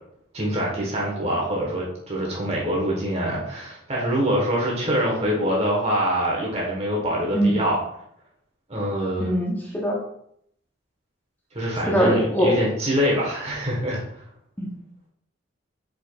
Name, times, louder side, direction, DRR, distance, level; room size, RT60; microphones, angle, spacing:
voice 1, 0.3-7.8 8.7-9.3 11.5-14.2, equal, 30° right, -4 dB, 1.1 m, -24 dB
voice 2, 9.2-10.0 11.9-12.5 14.6-14.7, equal, 10° left, -2 dB, 0.7 m, -21 dB
4.8 x 4.4 x 2.3 m, 0.71 s
head